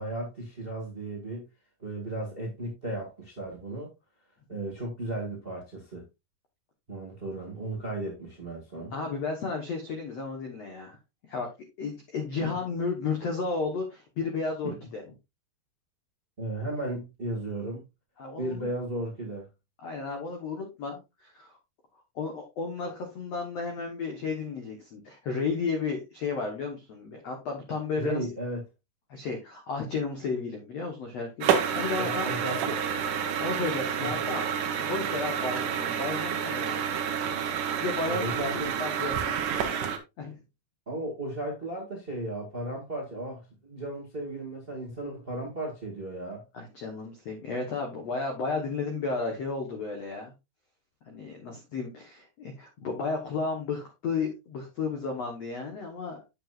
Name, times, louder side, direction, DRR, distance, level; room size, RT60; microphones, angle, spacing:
voice 1, 0.0-1.5 1.8-3.9 4.5-6.0 6.9-8.9 12.4-12.5 16.4-17.8 18.4-19.4 27.9-28.6 32.0-32.8 34.0-34.3 38.1-38.7 40.8-46.4, right 1 dB, 30° right, 1.0 m, -35 dB
voice 2, 8.9-11.0 11.3-11.5 11.8-15.0 18.2-18.6 19.8-21.6 22.1-28.2 29.1-32.3 33.4-34.5 34.8-36.8 37.8-38.4 38.8-40.4 46.5-50.3 51.1-56.3, left 4 dB, 70° left, 1.5 m, -33 dB
sound 1, 31.4-40.0, right 8 dB, 75° right, 1.9 m, -29 dB
8.4 x 7.9 x 2.5 m
omnidirectional pair, 5.0 m